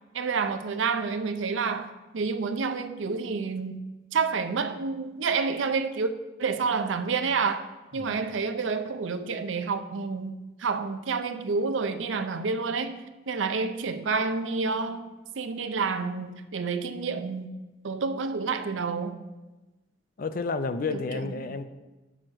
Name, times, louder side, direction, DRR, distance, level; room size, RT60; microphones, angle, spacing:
voice 1, 0.1-3.8 4.1-6.1 6.4-7.7 7.9-17.5 17.8-19.2 20.9-21.0 21.3-21.4, right 4 dB, 90° right, 0.6 m, -29 dB
voice 2, 20.2-21.6, left 4 dB, 50° left, 0.4 m, -31 dB
6.3 x 6.2 x 4.5 m
head